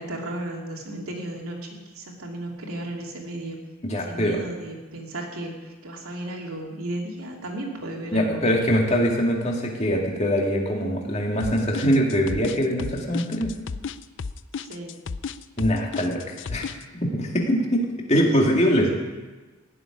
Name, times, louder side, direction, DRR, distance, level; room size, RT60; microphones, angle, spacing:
voice 1, 0.0-3.6 3.9-8.5 14.5-15.0 18.8-18.9, right 1 dB, 80° right, 0 dB, 2.9 m, -34 dB
voice 2, 3.8-4.4 8.1-13.5 15.6-16.7 17.0-19.0, equal, 30° left, 0 dB, 2.4 m, -23 dB
sound 1, 11.4-16.8, left 5 dB, 55° left, 0.5 m, -33 dB
16.0 x 7.3 x 10.0 m, 1.2 s
head